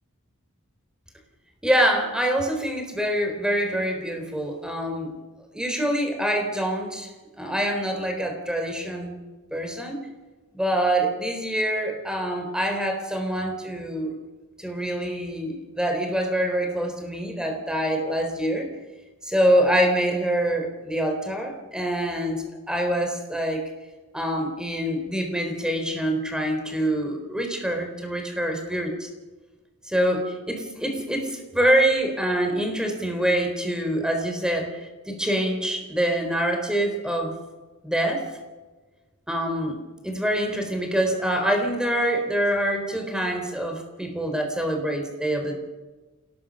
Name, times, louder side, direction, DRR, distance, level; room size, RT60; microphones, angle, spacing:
voice 1, 1.6-5.1 5.5-7.1 7.4-9.2 9.5-10.0 10.5-14.1 14.6-18.7 19.2-23.6 24.1-29.1 29.9-34.7 35.1-37.3 37.8-38.2 39.3-39.8 40.0-45.6, right 1 dB, 5° right, 4 dB, 4.0 m, -25 dB
28.0 x 18.0 x 6.5 m, 1.3 s
head